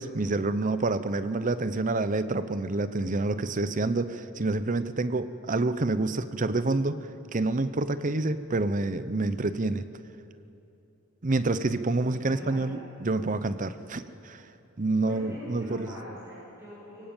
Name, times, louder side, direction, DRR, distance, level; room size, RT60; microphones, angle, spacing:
voice 1, 0.0-9.8 11.2-14.4 14.8-15.9, right 2 dB, 40° right, 13 dB, 0.7 m, -28 dB
voice 2, 12.0-12.7 15.1-17.1, equal, 10° right, -10 dB, 7.6 m, -43 dB
24.0 x 16.0 x 9.0 m, 2.9 s
head